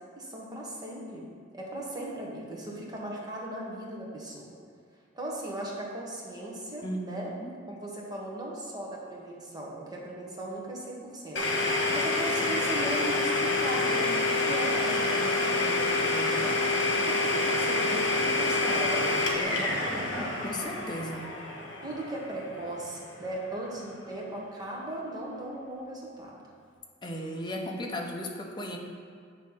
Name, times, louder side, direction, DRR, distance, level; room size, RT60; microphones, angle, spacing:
voice 1, 0.2-1.2 1.5-4.6 5.1-7.3 7.7-16.6 16.9-20.7 21.8-26.4, right 1 dB, 20° right, -3 dB, 1.2 m, -38 dB
voice 2, 6.8-7.5 20.2-21.3 27.0-28.8, equal, 25° left, 0 dB, 0.8 m, -36 dB
Domestic sounds home sounds, 11.4-23.0, left 2 dB, 75° left, 1.3 m, -27 dB
9.2 x 3.2 x 5.6 m, 2.1 s
head